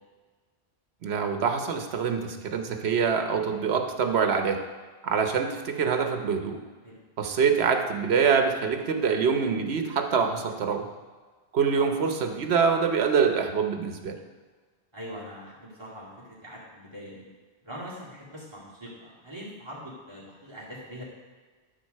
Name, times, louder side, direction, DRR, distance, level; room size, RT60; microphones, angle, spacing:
voice 1, 1.0-4.6 5.0-6.6 7.2-10.9 11.5-14.2, right 6 dB, 80° right, 6 dB, 1.1 m, -25 dB
voice 2, 14.9-17.2 17.6-21.0, equal, 25° right, -6 dB, 2.4 m, -42 dB
11.5 x 4.0 x 6.5 m, 1.4 s
omnidirectional pair, 1.1 m